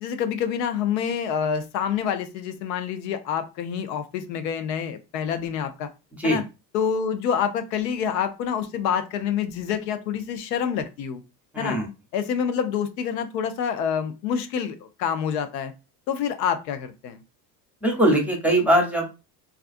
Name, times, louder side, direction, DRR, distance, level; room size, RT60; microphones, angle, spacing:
voice 1, 0.0-5.9 6.2-6.4 6.7-11.2 11.6-11.8 12.1-15.7 16.1-17.2, left 7 dB, 80° left, 9 dB, 0.6 m, -27 dB
voice 2, 11.5-11.9 17.8-19.1, right 1 dB, 5° right, 1 dB, 0.8 m, -21 dB
2.4 x 2.2 x 2.5 m, 0.28 s
supercardioid pair, 95°, 50 cm